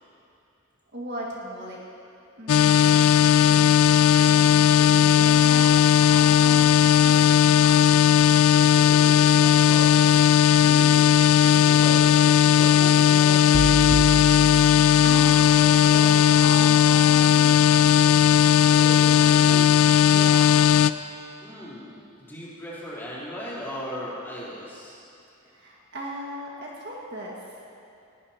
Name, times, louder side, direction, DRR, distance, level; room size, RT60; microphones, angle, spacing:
voice 1, 0.9-1.8 2.4-3.2 3.4-5.7 6.0-6.7 7.0-7.9 14.8-17.9 20.0-20.6 25.4-27.5, right 1 dB, 50° right, -3 dB, 1.8 m, -38 dB
sound 1, 2.5-20.9, left 9 dB, 90° left, 0.4 m, -17 dB
voice 2, 8.7-9.9 10.5-14.4 18.8-19.7 21.4-25.0, equal, 10° left, -9 dB, 3.7 m, -38 dB
sound 2, 13.5-15.8, right 3 dB, 35° right, 0.3 m, -31 dB
19.5 x 18.0 x 2.9 m, 2.7 s
head